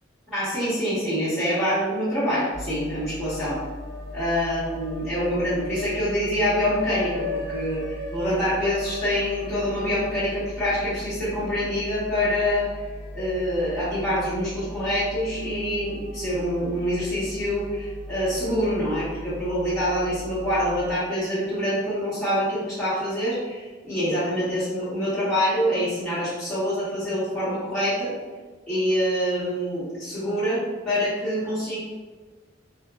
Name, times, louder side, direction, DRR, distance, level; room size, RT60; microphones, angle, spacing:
voice 1, 0.3-3.6 4.1-12.7 13.1-28.1 28.7-31.8, equal, ahead, -15 dB, 1.0 m, -26 dB
sound 1, 2.1-2.9 3.2-13.5 14.0-14.1 15.2-18.6, left 2 dB, 70° left, 0.5 m, -40 dB
sound 2, 2.5-20.9, left 1 dB, 55° right, 1.1 m, -39 dB
3.0 x 2.1 x 2.2 m, 1.4 s
head